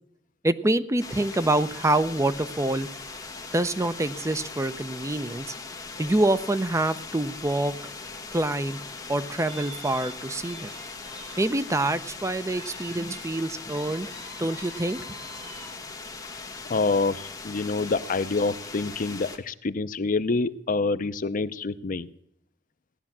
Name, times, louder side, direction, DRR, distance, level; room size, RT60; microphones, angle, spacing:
voice 1, 0.4-2.9 3.5-5.5 6.0-7.7 8.3-8.8 9.1-10.7 11.4-14.1 14.4-15.0, right 2 dB, 15° right, 12 dB, 0.6 m, -26 dB
sound 1, 1.0-19.4, left 4 dB, 20° left, 1.6 m, -40 dB
sound 2, 9.5-11.4 11.8-11.9 12.5-13.3 13.7-15.7, right 1 dB, 35° right, 5.6 m, -46 dB
voice 2, 16.7-22.1, left 3 dB, 45° left, 14 dB, 0.6 m, -27 dB
17.0 x 11.0 x 7.3 m, 0.72 s
head